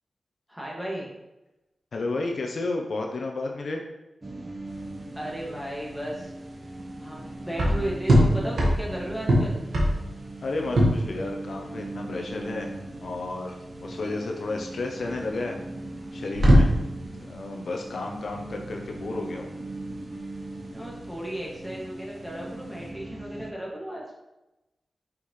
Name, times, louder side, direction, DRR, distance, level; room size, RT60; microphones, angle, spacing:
voice 1, 0.5-1.1 5.2-6.3 7.0-9.6 20.7-24.0, right 1 dB, 5° right, -4 dB, 2.1 m, -35 dB
voice 2, 1.9-3.8 10.4-15.6 16.1-16.7 17.1-19.5, left 2 dB, 70° left, 2 dB, 0.8 m, -32 dB
sound 1, 4.2-23.5, right 2 dB, 35° right, 0.8 m, -40 dB
sound 2, 4.7-22.9, equal, 80° right, 1.7 m, -25 dB
6.1 x 5.7 x 3.2 m, 0.99 s
cardioid pair, 70°, 0 cm